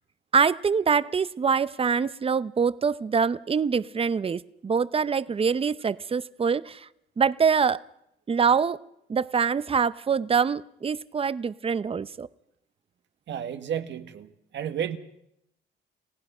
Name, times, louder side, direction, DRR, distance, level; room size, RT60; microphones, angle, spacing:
voice 1, 0.3-6.9 7.2-7.8 8.3-8.8 9.1-12.3, right 6 dB, 30° right, 0.6 m, -24 dB
voice 2, 13.3-15.0, right 9 dB, 65° right, 1.5 m, -32 dB
29.5 x 16.0 x 5.5 m
cardioid pair, 90°, 20 cm